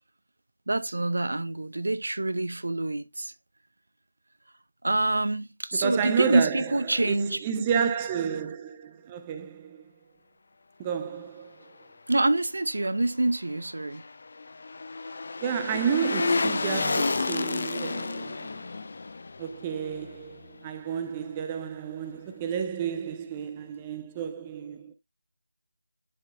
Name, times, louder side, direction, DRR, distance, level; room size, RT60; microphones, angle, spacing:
voice 1, 0.7-3.3 4.8-7.9 12.1-14.0, right 2 dB, 60° right, 0.6 m, -26 dB
voice 2, 5.8-9.9 10.8-11.6 15.4-18.6 19.4-24.9, right 7 dB, 15° right, 0.4 m, -31 dB
sound 1, 13.5-20.7 21.0-21.1, left 3 dB, 40° left, 0.5 m, -31 dB
11.0 x 4.6 x 2.2 m
figure-of-eight pair, 160°, 0 cm